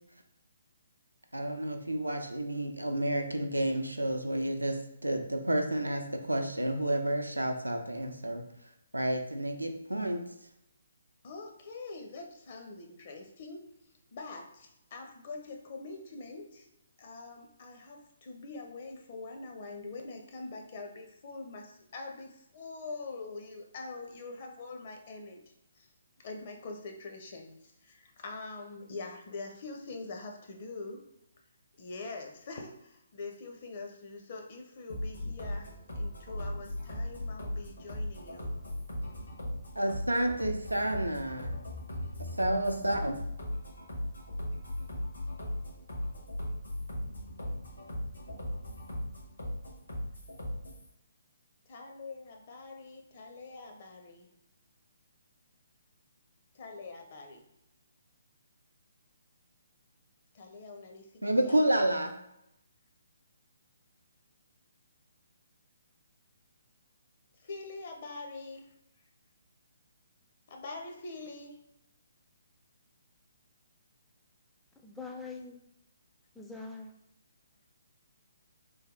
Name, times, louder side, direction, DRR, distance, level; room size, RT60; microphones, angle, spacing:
voice 1, 1.3-8.4 8.9-10.3 39.8-41.5 42.2-43.2 61.2-62.1, right 1 dB, 90° right, 4 dB, 0.5 m, -30 dB
voice 2, 11.2-13.7 14.1-16.7 17.0-25.4 25.7-25.9 26.2-31.0 31.8-38.5 51.7-54.3 56.5-57.4 60.3-61.6 67.4-68.7 70.5-71.6, left 3 dB, 45° left, 2 dB, 0.6 m, -44 dB
sound 1, 34.9-50.9, left 1 dB, 80° left, 1.3 m, -38 dB
voice 3, 74.8-75.6 76.3-76.9, left 4 dB, 5° left, 1 dB, 0.4 m, -43 dB
3.3 x 2.3 x 3.7 m, 0.82 s
figure-of-eight pair, 135°, 0 cm